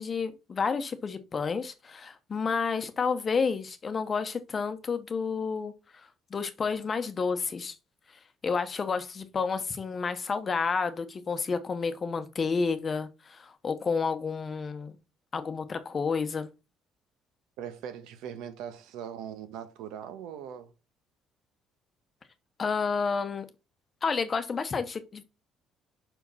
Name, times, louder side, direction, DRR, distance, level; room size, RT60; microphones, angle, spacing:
voice 1, 0.0-7.7 8.4-15.0 15.3-16.5 22.6-23.5 24.0-25.2, left 5 dB, 30° left, 0.9 m, -30 dB
voice 2, 17.6-20.7, right 9 dB, 90° right, 1.3 m, -40 dB
5.7 x 4.8 x 5.6 m
cardioid pair, 135°, 0 cm